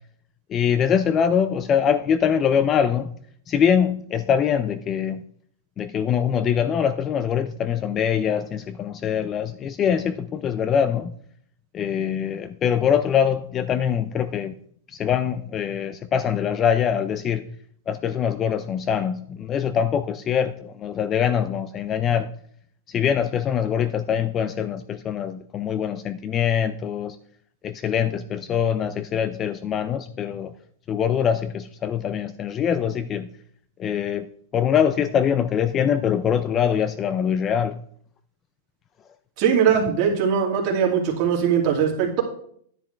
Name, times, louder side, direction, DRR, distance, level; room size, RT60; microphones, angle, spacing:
voice 1, 0.5-3.1 3.5-5.2 5.8-11.1 11.7-14.5 14.9-17.4 17.9-22.3 22.9-27.2 27.6-30.5 30.9-33.3 33.8-34.3 34.5-37.8, left 8 dB, 20° left, 0.4 m, -23 dB
voice 2, 39.4-42.2, right 7 dB, 35° right, 2.5 m, -20 dB
10.0 x 10.0 x 3.4 m
supercardioid pair, 165°, 0 cm